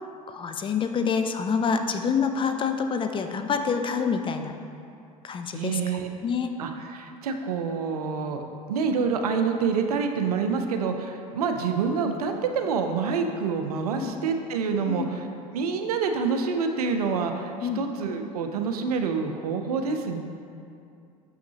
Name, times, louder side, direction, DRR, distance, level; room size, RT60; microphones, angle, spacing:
voice 1, 0.3-4.5 5.2-5.8 6.2-6.5 14.0-14.1 14.9-15.1 17.6-17.8, left 6 dB, 25° left, 6 dB, 0.4 m, -27 dB
voice 2, 5.5-6.1 6.6-8.4 8.7-15.3 15.5-20.2, right 5 dB, 80° right, 5 dB, 0.5 m, -27 dB
6.3 x 5.8 x 2.8 m, 2.5 s
hypercardioid pair, 75°, 19 cm